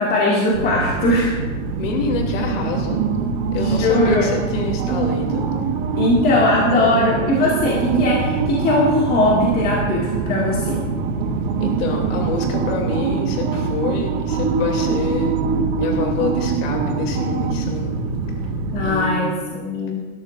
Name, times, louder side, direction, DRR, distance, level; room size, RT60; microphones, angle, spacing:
voice 1, 0.0-1.4 3.5-4.3 6.0-10.8 18.7-20.0, left 2 dB, 20° left, -5 dB, 2.1 m, -19 dB
Musical Road, 0.5-18.9, right 5 dB, 50° right, 1.5 m, -23 dB
voice 2, 1.8-3.0 3.5-5.5 11.6-15.4 15.8-18.0 18.8-19.3, left 3 dB, 65° left, 2 dB, 2.9 m, -26 dB
18.0 x 13.5 x 2.6 m, 1.3 s
supercardioid pair, 155°, 40 cm